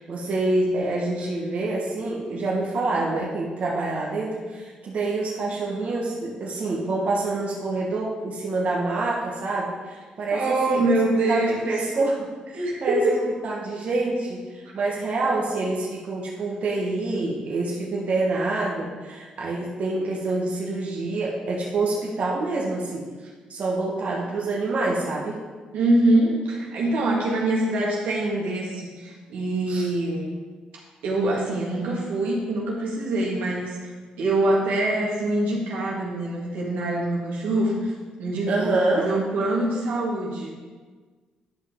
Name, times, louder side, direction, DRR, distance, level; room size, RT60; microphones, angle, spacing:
voice 1, 0.0-10.8 11.3-13.2 13.4-23.1 23.5-25.4 29.7-29.9 38.5-39.1, right 2 dB, 55° right, -4 dB, 1.4 m, -26 dB
voice 2, 10.3-11.6 12.5-13.2 14.8-14.9 25.7-30.3 31.0-33.9 34.2-37.9 38.2-40.5, right 2 dB, 85° right, -3 dB, 1.9 m, -24 dB
10.5 x 5.5 x 3.7 m, 1.4 s
cardioid pair, 85°, 3 cm